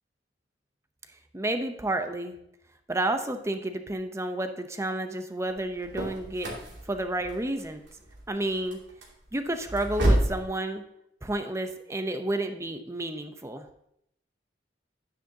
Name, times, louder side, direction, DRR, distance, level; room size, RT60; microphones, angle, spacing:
voice 1, 1.3-2.3 2.9-6.5 6.9-7.8 8.3-8.8 9.3-10.8 11.2-13.7, right 1 dB, 15° right, 7 dB, 0.7 m, -30 dB
sound 1, 5.5-10.5, right 1 dB, 80° right, 2.6 m, -30 dB
10.5 x 9.7 x 2.8 m, 0.75 s
head